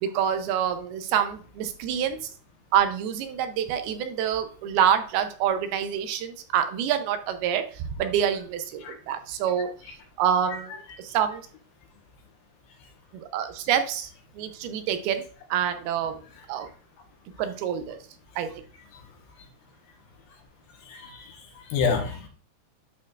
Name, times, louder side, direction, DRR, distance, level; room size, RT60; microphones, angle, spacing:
voice 1, 0.0-2.2 2.7-9.7 10.2-11.4 13.3-14.1 14.4-15.2 15.5-16.2 16.5-16.7 17.4-18.0 18.4-18.5, right 9 dB, 80° right, 8 dB, 2.5 m, -26 dB
voice 2, 20.8-22.3, left 5 dB, 75° left, 3 dB, 2.8 m, -29 dB
11.5 x 4.3 x 2.4 m, 0.41 s
omnidirectional pair, 4.6 m